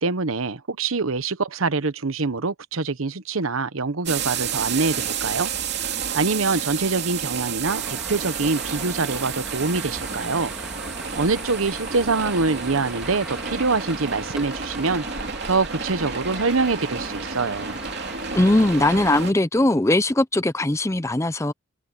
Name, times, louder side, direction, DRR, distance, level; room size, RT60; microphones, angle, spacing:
voice 1, 0.0-5.5 6.1-10.5 11.1-15.0 15.5-17.8, right 3 dB, 80° right, 1.0 m, -24 dB
sound 1, 4.1-19.3, right 6 dB, 50° right, 3.1 m, -31 dB
sound 2, 7.7-19.2, equal, 5° right, 2.6 m, -39 dB
voice 2, 18.3-21.5, left 1 dB, 15° left, 0.5 m, -20 dB
head